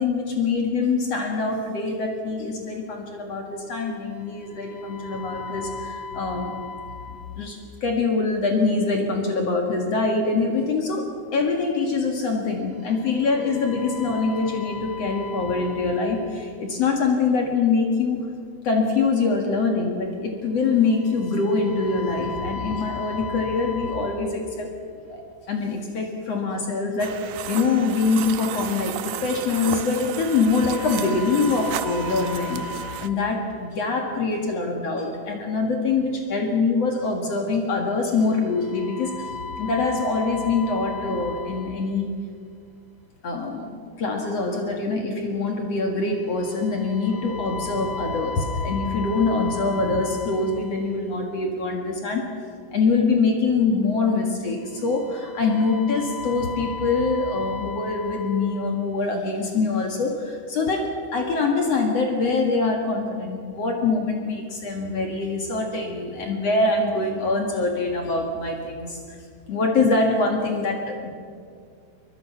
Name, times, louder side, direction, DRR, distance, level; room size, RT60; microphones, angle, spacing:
voice 1, 0.0-18.3 18.6-24.7 25.1-42.1 43.2-52.4 52.7-69.2 69.5-71.1, left 4 dB, 50° left, 2 dB, 2.3 m, -24 dB
sound 1, 27.0-33.1, right 12 dB, 80° right, 2.2 m, -33 dB
23.0 x 22.0 x 5.9 m, 2.2 s
omnidirectional pair, 4.7 m